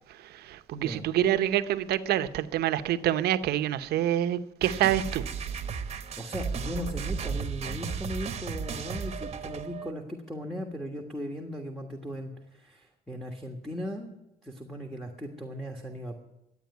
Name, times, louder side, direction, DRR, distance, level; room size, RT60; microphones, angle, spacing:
voice 1, 0.1-5.3, right 12 dB, 70° right, 11 dB, 0.8 m, -27 dB
voice 2, 0.7-1.1 6.2-16.2, equal, ahead, 2 dB, 1.5 m, -38 dB
sound 1, 4.6-9.9, right 6 dB, 40° right, 1.0 m, -34 dB
12.0 x 8.8 x 9.4 m, 0.90 s
cardioid pair, 110°, 17 cm